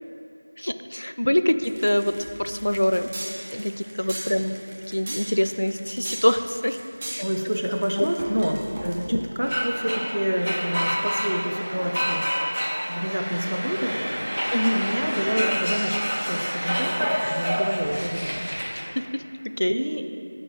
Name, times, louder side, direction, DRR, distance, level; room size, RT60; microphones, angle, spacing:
voice 1, 0.6-3.1 3.5-4.6 4.9-6.8 7.1-7.2 8.0-8.1 9.1-9.2 14.5-14.8 19.0-19.8, equal, 55° left, 9 dB, 0.4 m, -24 dB
sound 1, 1.6-9.3, right 1 dB, 10° right, 0.4 m, -38 dB
voice 2, 4.0-4.3 7.2-12.3 12.9-14.3 14.7-16.0 16.2-18.5 19.7-20.1, equal, 55° right, 4 dB, 0.7 m, -28 dB
sound 2, 9.4-18.9, equal, 80° right, 1.4 m, -28 dB
6.2 x 4.8 x 6.5 m, 2.5 s
figure-of-eight pair, 175°, 0 cm